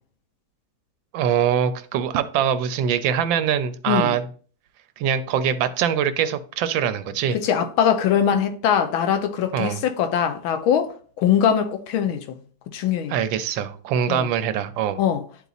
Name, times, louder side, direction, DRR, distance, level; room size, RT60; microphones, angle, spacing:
voice 1, 1.1-4.2 5.0-7.4 9.5-9.8 13.1-15.0, right 8 dB, 80° right, 1.3 m, -23 dB
voice 2, 3.9-4.2 7.3-12.4 12.7-13.1 14.1-14.3 15.0-15.2, left 8 dB, 85° left, 1.6 m, -22 dB
11.5 x 4.0 x 2.4 m
omnidirectional pair, 2.2 m